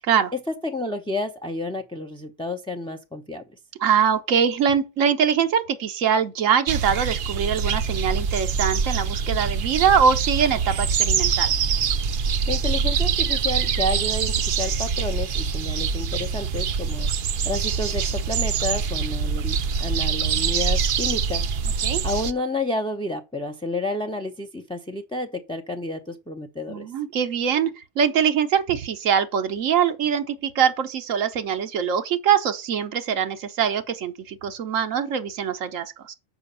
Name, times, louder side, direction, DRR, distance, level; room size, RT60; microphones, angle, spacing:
voice 1, 0.5-3.4 12.5-17.1 17.4-26.9, left 2 dB, 5° left, 0.4 m, -30 dB
voice 2, 3.8-11.5 21.8-22.0 26.7-36.1, right 7 dB, 85° right, 1.2 m, -23 dB
sound 1, 6.7-22.3, right 6 dB, 55° right, 0.7 m, -24 dB
6.9 x 5.0 x 6.6 m
omnidirectional pair, 1.3 m